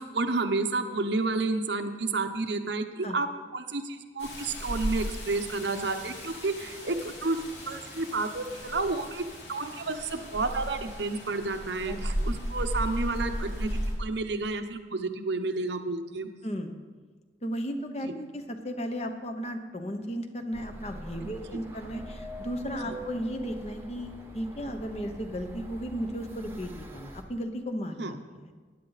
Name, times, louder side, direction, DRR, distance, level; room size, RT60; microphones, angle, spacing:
voice 1, 0.0-3.3 3.5-16.3 18.0-18.1 21.2-21.6 22.8-23.0 28.0-28.1, right 3 dB, 75° right, 7 dB, 0.9 m, -31 dB
Rain, 4.2-13.9, equal, 75° left, 3.2 m, -35 dB
voice 2, 11.9-12.3 16.4-16.7 17.4-28.2 28.4-28.5, equal, 35° left, 6 dB, 0.9 m, -35 dB
sound 1, 20.5-27.2, equal, 15° right, 1.0 m, -43 dB
15.5 x 10.0 x 4.1 m, 1.4 s
head